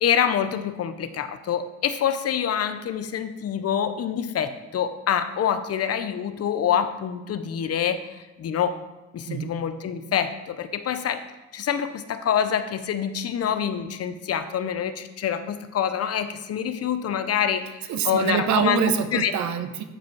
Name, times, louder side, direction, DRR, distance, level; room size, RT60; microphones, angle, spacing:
voice 1, 0.0-8.0 8.4-8.8 9.1-11.2 11.5-17.8 18.0-18.8 19.1-19.3, left 8 dB, 55° left, 11 dB, 0.7 m, -26 dB
voice 2, 17.9-19.8, right 7 dB, 70° right, 9 dB, 0.9 m, -25 dB
8.8 x 5.0 x 4.6 m, 1.1 s
cardioid pair, 90°, 30 cm